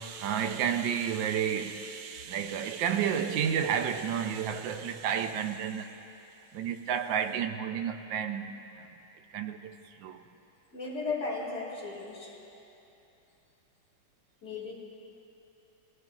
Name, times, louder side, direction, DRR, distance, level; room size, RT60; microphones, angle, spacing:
voice 1, 0.0-5.9 6.5-8.9 9.3-9.7 10.0-10.2, right 8 dB, 85° right, 1.3 m, -31 dB
voice 2, 10.7-12.3 14.4-14.7, left 3 dB, 40° left, 2.7 m, -35 dB
19.5 x 14.5 x 2.4 m
omnidirectional pair, 2.0 m